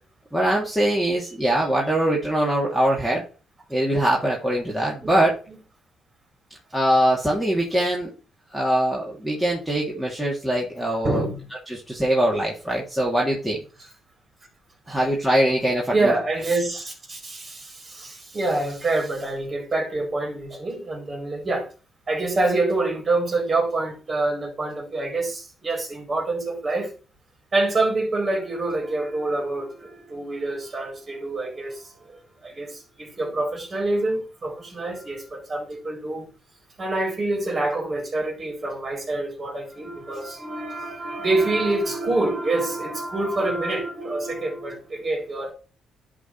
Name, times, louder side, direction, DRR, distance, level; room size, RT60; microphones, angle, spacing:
voice 1, 0.3-3.2 3.7-5.3 6.7-8.1 8.5-11.2 11.7-13.6 14.9-16.1, right 1 dB, 5° right, 2.5 m, -22 dB
voice 2, 5.0-5.6 11.0-11.4 14.9-15.0 15.9-21.7 22.1-26.9 27.5-36.3 36.8-45.5, right 2 dB, 30° right, 4.6 m, -26 dB
11.0 x 3.8 x 4.6 m
cardioid pair, 90°, 0 cm